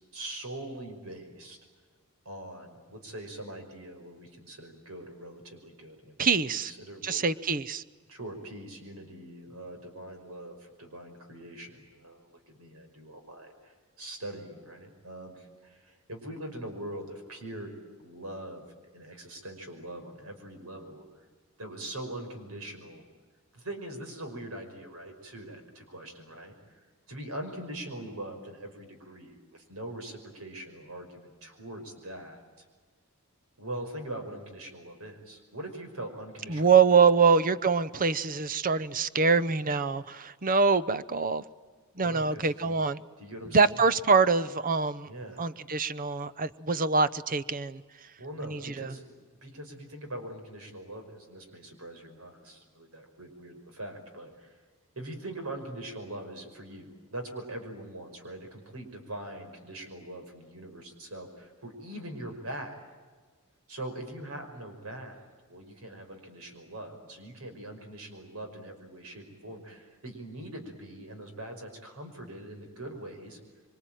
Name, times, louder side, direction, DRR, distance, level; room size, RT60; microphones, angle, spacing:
voice 1, 0.1-1.6 2.3-7.2 8.1-21.0 21.6-23.0 23.5-32.7 33.6-37.0 42.0-42.8 43.2-43.8 45.0-45.5 48.2-54.5 55.0-62.8 63.7-73.4, right 1 dB, 70° right, 5.5 m, -42 dB
voice 2, 6.2-6.7 7.0-7.8 36.5-41.4 42.0-43.0 43.5-45.1 45.4-47.8 48.4-48.9, right 5 dB, 40° right, 0.8 m, -24 dB
26.0 x 25.0 x 9.1 m
head